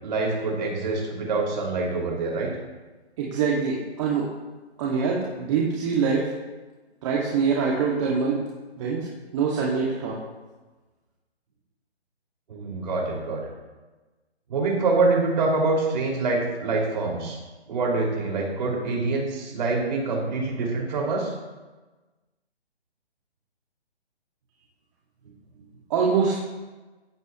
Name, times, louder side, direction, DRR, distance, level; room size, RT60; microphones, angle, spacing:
voice 1, 0.0-2.5 12.5-13.4 14.5-17.4 17.7-21.3, right 3 dB, 45° right, -2 dB, 5.7 m, -25 dB
voice 2, 3.2-4.3 4.8-6.3 7.0-8.4 8.8-9.1 9.3-10.2 25.9-26.4, right 5 dB, 30° right, -4 dB, 2.3 m, -24 dB
17.0 x 15.5 x 3.2 m, 1.2 s
hypercardioid pair, 150°, 33 cm